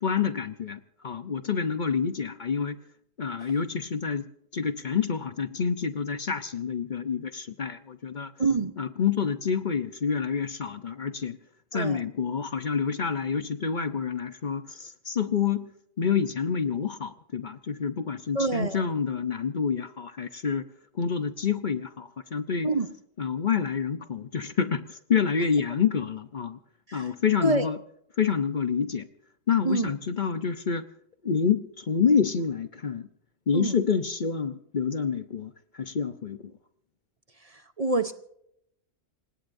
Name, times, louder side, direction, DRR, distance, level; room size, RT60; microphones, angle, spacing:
voice 1, 0.0-2.8 3.2-8.3 8.8-11.4 11.7-15.7 16.0-20.7 20.9-22.7 23.2-26.6 26.9-27.8 28.2-29.1 29.5-30.9 31.2-33.1 33.5-36.5, left 6 dB, 45° left, 10 dB, 0.9 m, -28 dB
voice 2, 8.4-8.7 11.7-12.0 18.3-18.8 22.6-22.9 26.9-27.1 27.4-27.8 29.6-29.9 33.5-33.8 37.4-38.1, right 3 dB, 35° right, 9 dB, 1.0 m, -26 dB
28.0 x 17.5 x 2.7 m, 0.73 s
omnidirectional pair, 1.1 m